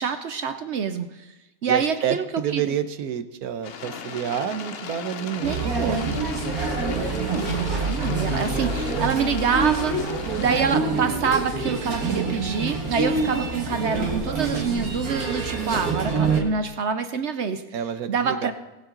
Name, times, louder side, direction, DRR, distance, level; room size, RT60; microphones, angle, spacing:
voice 1, 0.0-1.3 1.6-2.2 2.5-2.7 5.4-6.3 6.9-17.6 18.1-18.5, right 6 dB, 60° right, 9 dB, 0.9 m, -26 dB
voice 2, 1.7-5.5 5.8-6.4 17.7-18.5, right 9 dB, 90° right, 11 dB, 1.3 m, -29 dB
sound 1, 3.6-10.6, left 7 dB, 50° left, 0.8 m, -37 dB
sound 2, 5.4-16.4, right 4 dB, 75° right, 2.2 m, -26 dB
20.0 x 7.5 x 3.8 m, 1.1 s
omnidirectional pair, 1.5 m